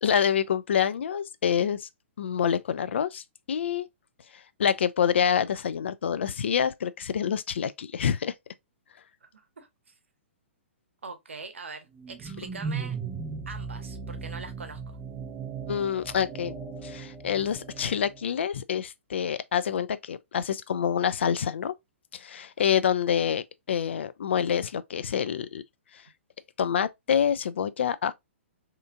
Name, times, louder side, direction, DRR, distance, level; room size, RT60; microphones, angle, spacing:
voice 1, 0.0-1.9 2.2-3.9 4.6-8.3 15.7-16.5 16.8-21.7 22.1-25.6 26.6-28.1, left 8 dB, 60° left, 0.3 m, -27 dB
voice 2, 9.2-9.9 11.0-13.0 13.5-14.8 22.6-22.7, right 4 dB, 70° right, 0.7 m, -43 dB
sound 1, 11.9-18.3, right 5 dB, 15° right, 0.5 m, -37 dB
2.9 x 2.4 x 2.4 m
figure-of-eight pair, 120°, 7 cm